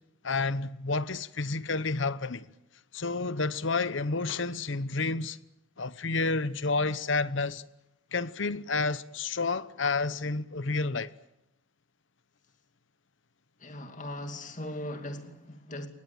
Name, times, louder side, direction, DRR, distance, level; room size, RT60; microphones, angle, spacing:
voice 1, 0.2-2.4 2.9-5.4 5.8-7.6 8.1-11.1, left 3 dB, 60° left, 1.0 m, -30 dB
voice 2, 13.6-15.9, left 1 dB, 35° left, 2.6 m, -39 dB
23.5 x 20.0 x 9.1 m
head